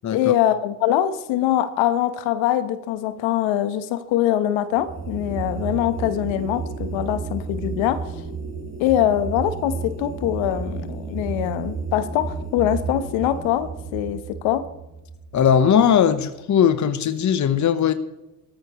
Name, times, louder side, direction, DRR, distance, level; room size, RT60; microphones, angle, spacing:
voice 1, 0.1-8.1 8.8-14.7, left 11 dB, 65° left, 11 dB, 1.2 m, -23 dB
sound 1, 4.7-16.1, right 4 dB, 25° right, 4.4 m, -32 dB
voice 2, 15.3-17.9, left 8 dB, 35° left, 11 dB, 1.1 m, -18 dB
17.5 x 14.0 x 3.1 m, 0.95 s
hypercardioid pair, 65°, 49 cm